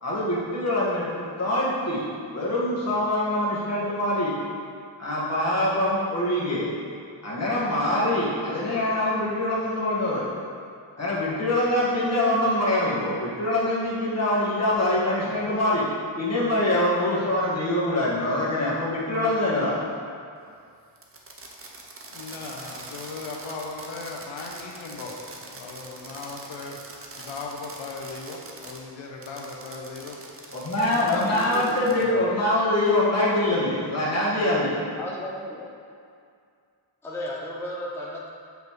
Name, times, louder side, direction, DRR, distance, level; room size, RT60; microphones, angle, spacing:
voice 1, 0.0-2.0 2.3-4.4 5.0-6.7 7.2-10.3 11.0-15.8 16.2-19.8 30.5-34.8, left 1 dB, 35° left, -7 dB, 1.6 m, -24 dB
Fireworks, 21.0-28.8 29.2-32.1, right 3 dB, 30° right, 0.7 m, -43 dB
voice 2, 22.0-30.2 30.9-32.2, left 3 dB, 85° left, 0 dB, 0.8 m, -38 dB
voice 3, 31.0-31.8 35.0-35.6 37.0-38.3, left 1 dB, 5° left, -4 dB, 0.7 m, -34 dB
7.7 x 5.2 x 3.1 m, 2.3 s
wide cardioid pair, 130°, 46 cm